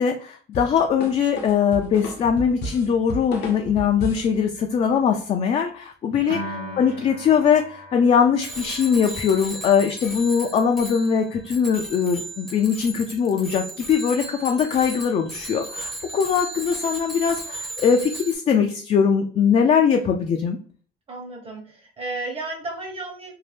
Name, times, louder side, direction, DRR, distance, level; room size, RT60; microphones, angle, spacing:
voice 1, 0.0-20.6, left 7 dB, 40° left, 3 dB, 0.4 m, -21 dB
sound 1, 0.5-4.3, left 1 dB, 75° left, 0.8 m, -33 dB
voice 2, 6.2-6.8 21.1-23.3, right 2 dB, 35° right, 0 dB, 1.1 m, -34 dB
Piano, 6.3-12.7, equal, 50° right, 0.7 m, -41 dB
Bicycle bell, 8.4-18.4, right 1 dB, ahead, 0.7 m, -36 dB
2.7 x 2.1 x 3.3 m, 0.43 s
cardioid pair, 110°, 17 cm